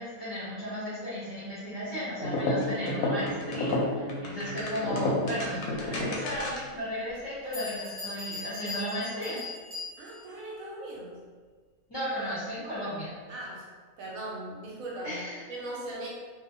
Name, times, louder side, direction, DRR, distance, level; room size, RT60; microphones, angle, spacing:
voice 1, 0.0-9.4 11.9-13.1 15.0-15.4, equal, 35° left, -12 dB, 0.4 m, -35 dB
sound 1, 2.2-6.8, left 1 dB, 70° left, 0.9 m, -30 dB
Bell, 6.3-6.4 7.1-7.2 7.5-10.3, left 4 dB, 10° right, 0.8 m, -39 dB
voice 2, 10.0-11.2 13.3-13.7 14.0-15.2 15.5-16.1, right 1 dB, 70° right, -4 dB, 0.9 m, -39 dB
2.5 x 2.1 x 2.7 m, 1.5 s
omnidirectional pair, 1.6 m